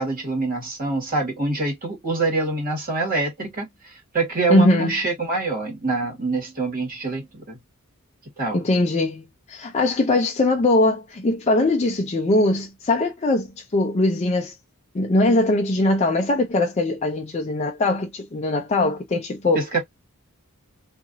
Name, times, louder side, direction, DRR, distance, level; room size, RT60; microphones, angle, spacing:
voice 1, 0.0-7.6 8.4-8.6 19.5-19.8, right 3 dB, 40° right, 1.6 m, -25 dB
voice 2, 4.5-5.0 8.5-14.5 14.9-19.6, left 2 dB, 30° left, 0.5 m, -21 dB
2.8 x 2.5 x 2.6 m
head